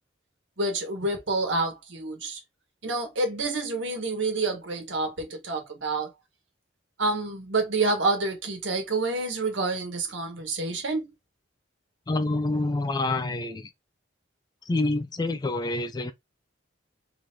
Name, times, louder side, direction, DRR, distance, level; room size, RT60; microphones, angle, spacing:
voice 1, 0.6-2.4 2.8-6.1 7.0-11.1, right 3 dB, 75° right, 1.4 m, -28 dB
voice 2, 12.1-13.7 14.7-16.1, left 2 dB, 20° left, 0.3 m, -27 dB
3.7 x 3.2 x 2.7 m
head